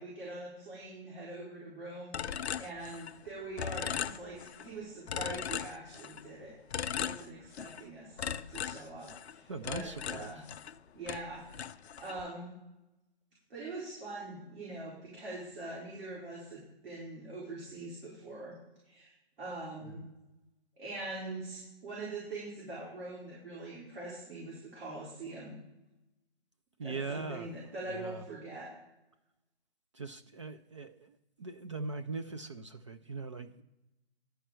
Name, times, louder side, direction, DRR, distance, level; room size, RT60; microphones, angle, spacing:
voice 1, 0.0-6.6 6.9-10.4 10.9-12.5 13.5-18.6 18.8-20.1 20.8-25.6 26.8-28.7, right 2 dB, 60° right, -6 dB, 4.4 m, -43 dB
sound 1, 2.1-3.3 3.6-4.7 5.1-6.3 6.7-7.8 8.2-10.8 11.1-12.2, left 8 dB, 85° left, 0.5 m, -38 dB
voice 2, 9.5-10.4 19.9-20.1 26.8-27.6 27.9-28.2 29.9-33.6, right 3 dB, 30° right, 9 dB, 0.4 m, -41 dB
11.5 x 4.6 x 7.5 m, 0.95 s
hypercardioid pair, 145°, 32 cm